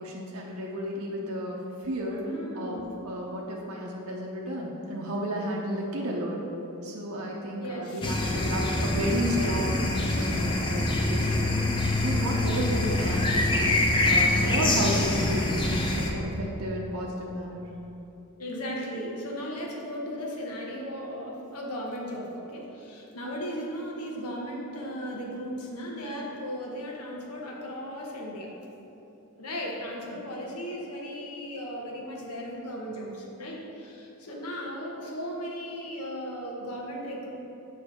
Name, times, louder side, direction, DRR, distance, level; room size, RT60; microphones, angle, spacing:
voice 1, 0.0-2.2 2.5-2.8 3.0-6.5 6.8-17.6 30.1-30.2, equal, 75° right, -3 dB, 0.7 m, -32 dB
voice 2, 2.2-2.9 7.6-8.2 17.4-17.5 18.4-28.5 29.4-37.3, equal, 90° left, -1 dB, 1.1 m, -36 dB
sound 1, 8.0-16.1, left 2 dB, 20° left, 0.5 m, -25 dB
7.1 x 3.3 x 5.5 m, 3.0 s
head